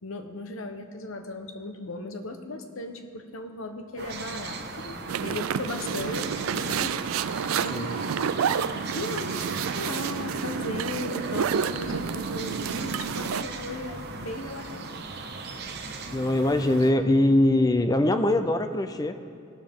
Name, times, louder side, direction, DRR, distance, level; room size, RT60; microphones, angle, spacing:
voice 1, 0.0-7.0 7.6-14.9, left 2 dB, 80° left, 7 dB, 1.0 m, -37 dB
sound 1, 4.0-16.9, right 3 dB, 50° right, 1.0 m, -37 dB
sound 2, 5.1-13.4, right 7 dB, 85° right, 0.4 m, -30 dB
voice 2, 16.1-19.1, left 1 dB, 20° left, 9 dB, 0.4 m, -22 dB
17.5 x 12.0 x 3.6 m, 2.6 s
head